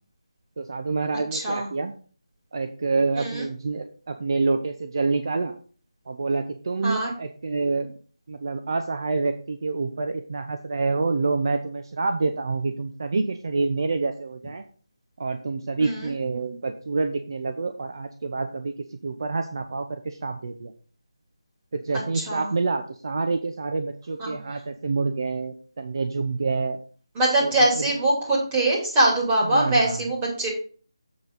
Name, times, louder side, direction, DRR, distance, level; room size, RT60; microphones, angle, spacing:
voice 1, 0.6-1.9 2.5-5.5 6.1-7.9 8.3-14.6 15.2-20.7 21.7-26.8 27.4-27.9 29.4-30.0, right 3 dB, 50° right, 6 dB, 0.8 m, -27 dB
voice 2, 1.3-1.7 3.2-3.4 6.8-7.1 15.8-16.1 21.9-22.5 24.2-24.3 27.1-30.5, right 1 dB, 15° right, -4 dB, 3.0 m, -23 dB
7.7 x 6.8 x 3.8 m, 0.41 s
figure-of-eight pair, 160°, 3 cm